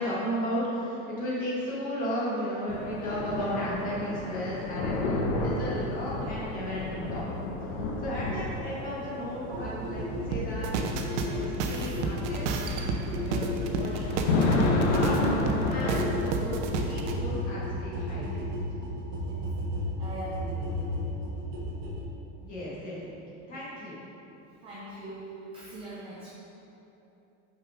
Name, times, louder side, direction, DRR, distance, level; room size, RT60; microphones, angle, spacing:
voice 1, 0.0-10.7 11.2-12.5 12.8-15.4 15.7-18.4 22.4-23.2 23.5-24.0, equal, 25° left, -7 dB, 1.5 m, -35 dB
sound 1, 2.7-16.1, left 2 dB, 75° left, 1.1 m, -31 dB
voice 2, 8.3-8.6 9.0-9.6 19.1-19.4 20.0-21.0 24.6-26.3, right 1 dB, 15° right, -7 dB, 0.4 m, -42 dB
sound 2, 9.5-22.0, left 1 dB, 60° right, 1.5 m, -33 dB
sound 3, 10.3-17.1, right 4 dB, 75° right, 0.8 m, -31 dB
6.5 x 4.7 x 4.9 m, 3.0 s
supercardioid pair, 180°, 36 cm